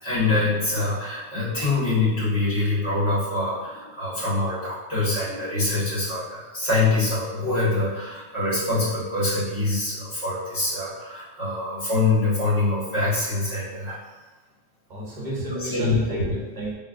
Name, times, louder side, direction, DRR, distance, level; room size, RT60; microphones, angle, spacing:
voice 1, 0.0-14.0 15.7-16.0, left 2 dB, 75° left, -10 dB, 2.1 m, -24 dB
voice 2, 14.9-16.7, right 1 dB, 40° right, -5 dB, 0.9 m, -33 dB
4.2 x 3.4 x 2.5 m, 1.2 s
omnidirectional pair, 1.3 m